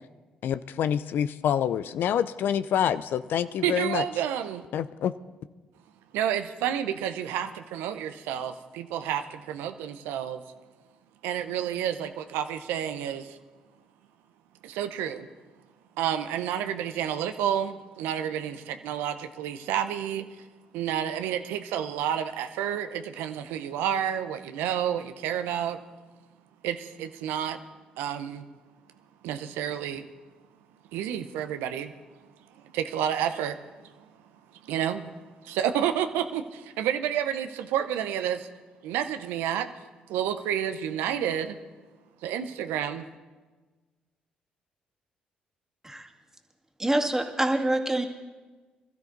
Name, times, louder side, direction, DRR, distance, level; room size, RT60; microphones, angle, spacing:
voice 1, 0.4-4.0 4.7-5.1, left 9 dB, 65° left, 14 dB, 0.5 m, -27 dB
voice 2, 3.6-4.6 6.1-10.4 11.2-13.4 14.6-15.3 16.0-20.3 20.7-25.8 26.6-27.6 28.0-28.5 29.2-30.1 30.9-31.9 32.7-33.6 34.6-35.1 35.4-38.5 38.8-39.7 40.1-41.6 42.2-43.0, right 10 dB, 80° right, 9 dB, 0.7 m, -30 dB
voice 3, 46.8-48.1, right 1 dB, 15° right, 3 dB, 2.2 m, -25 dB
21.5 x 13.0 x 4.0 m, 1.3 s
hypercardioid pair, 50°, 4 cm